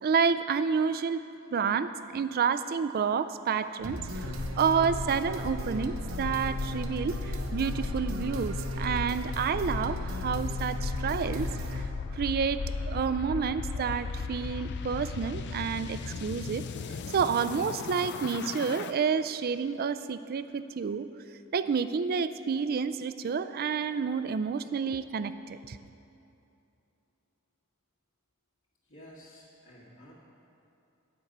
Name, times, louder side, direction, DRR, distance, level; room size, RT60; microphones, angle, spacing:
voice 1, 0.0-1.2 1.5-11.5 11.8-11.9 12.1-16.6 17.1-21.1 21.5-25.8, right 6 dB, 45° right, 12 dB, 0.4 m, -29 dB
sound 1, 3.8-11.8, right 1 dB, 70° right, 0.9 m, -37 dB
sound 2, 4.0-18.9, left 4 dB, 55° left, 0.4 m, -36 dB
voice 2, 28.8-30.1, equal, 70° left, -9 dB, 2.2 m, -52 dB
10.0 x 5.3 x 7.9 m, 2.8 s
head